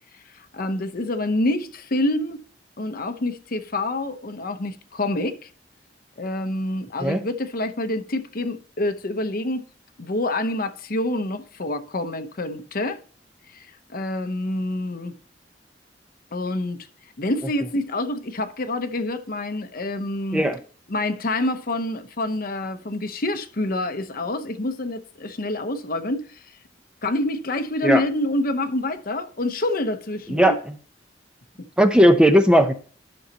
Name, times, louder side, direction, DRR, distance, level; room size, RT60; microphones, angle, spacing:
voice 1, 0.3-2.4 2.8-5.4 6.2-9.7 10.0-13.0 13.5-13.7 13.9-15.1 16.3-16.9 17.2-20.4 20.9-26.4 27.0-30.6, left 1 dB, 50° left, 0.9 m, -27 dB
voice 2, 30.3-30.7 31.8-32.7, equal, 5° right, 0.7 m, -17 dB
12.0 x 6.4 x 2.9 m
head